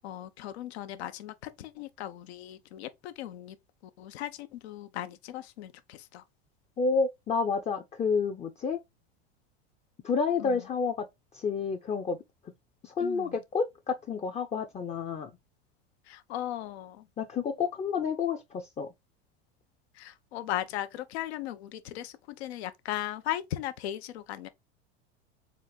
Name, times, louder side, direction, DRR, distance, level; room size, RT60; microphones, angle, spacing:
voice 1, 0.0-3.6 4.0-6.2 10.4-10.6 13.0-13.4 16.1-17.0 20.0-24.5, left 12 dB, 80° left, 0.8 m, -37 dB
voice 2, 6.8-8.8 10.0-11.1 11.3-12.2 12.8-15.3 17.2-18.9, left 5 dB, 20° left, 0.5 m, -29 dB
4.3 x 2.4 x 4.0 m
hypercardioid pair, 100°, 32 cm